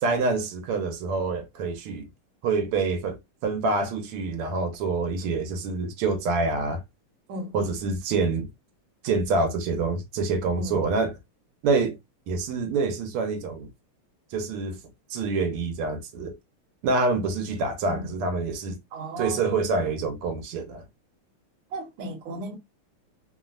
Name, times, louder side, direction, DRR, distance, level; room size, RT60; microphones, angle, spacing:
voice 1, 0.0-2.1 2.4-3.2 3.4-6.8 7.5-8.5 9.0-11.1 11.6-12.0 12.3-13.7 14.3-14.8 15.1-16.3 16.8-18.8 19.2-20.8, right 3 dB, 90° right, 1.7 m, -26 dB
voice 2, 18.9-19.4 21.7-22.6, right 1 dB, 70° right, 1.5 m, -35 dB
3.8 x 2.0 x 2.3 m
omnidirectional pair, 2.4 m